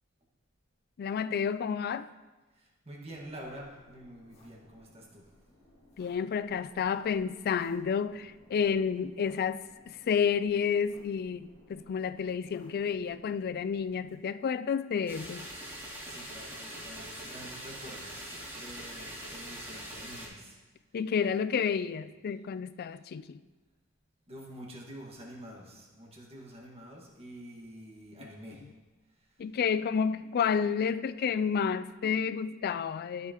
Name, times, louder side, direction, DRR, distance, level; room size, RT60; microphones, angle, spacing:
voice 1, 1.0-2.1 6.0-15.5 20.9-23.4 28.2-28.3 28.6-28.7 29.4-33.3, left 6 dB, 45° left, 0.3 m, -30 dB
voice 2, 2.6-5.2 16.1-20.6 24.3-28.6, right 1 dB, 30° right, 1.7 m, -47 dB
sound 1, 3.1-14.2, equal, 30° left, 1.8 m, -60 dB
Toothing Machine, 15.1-20.3, right 1 dB, 15° right, 2.5 m, -43 dB
13.0 x 6.9 x 2.9 m
head